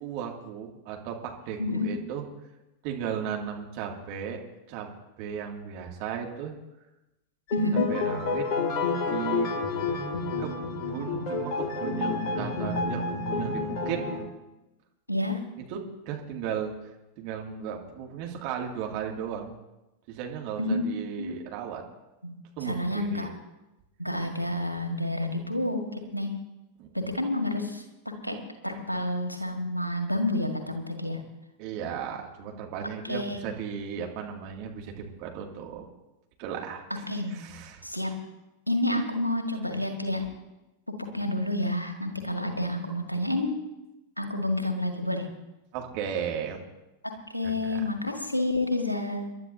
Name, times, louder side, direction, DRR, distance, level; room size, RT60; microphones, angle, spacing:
voice 1, 0.0-2.2 2.8-4.4 4.7-4.9 5.2-6.5 7.9-8.5 9.1-9.5 10.4-10.5 10.9-14.0 15.6-16.7 17.2-19.5 20.1-21.8 22.6-23.3 26.8-26.9 31.6-35.9 36.4-37.0 37.3-37.9 45.7-46.6 47.4-47.8, right 8 dB, 45° right, 1 dB, 2.5 m, -35 dB
voice 2, 1.6-1.9 7.5-7.9 15.1-15.4 20.6-20.8 21.2-21.3 22.2-22.4 22.7-23.3 24.0-26.3 26.9-28.4 28.6-31.2 33.0-33.4 37.1-37.4 37.8-38.1 38.7-40.2 41.1-43.5 44.2-45.3 47.3-49.3, left 1 dB, 90° left, 4 dB, 1.8 m, -29 dB
sound 1, 7.5-14.2, left 4 dB, 40° left, 2.6 m, -29 dB
28.5 x 12.0 x 2.8 m, 0.99 s
figure-of-eight pair, 90°, 0 cm